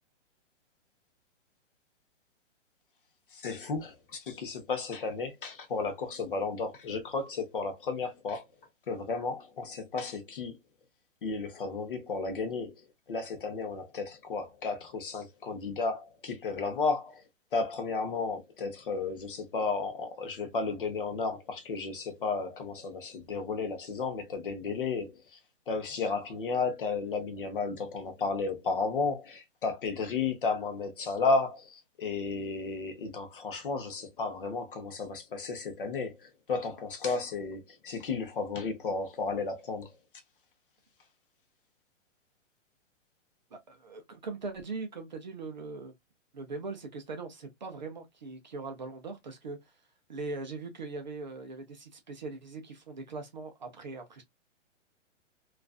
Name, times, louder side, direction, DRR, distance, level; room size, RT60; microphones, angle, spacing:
voice 1, 3.3-8.4 8.9-10.6 11.2-12.8 13.1-17.2 17.5-25.4 25.7-39.9, left 4 dB, 45° left, 0.7 m, -33 dB
voice 2, 43.5-45.9 46.3-49.7 50.1-54.2, right 3 dB, 40° right, 0.5 m, -40 dB
2.4 x 2.3 x 2.3 m
hypercardioid pair, 170°, 38 cm